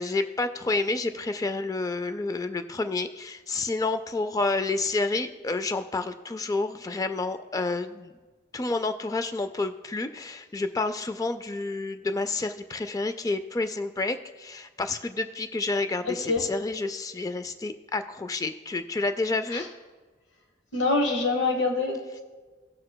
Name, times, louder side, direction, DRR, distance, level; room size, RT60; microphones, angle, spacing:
voice 1, 0.0-8.1 8.5-19.6, left 3 dB, 20° left, 10 dB, 0.3 m, -29 dB
voice 2, 16.0-16.5 19.5-19.7 20.7-22.2, left 3 dB, 80° left, 2 dB, 1.2 m, -25 dB
18.0 x 6.5 x 2.2 m, 1.4 s
head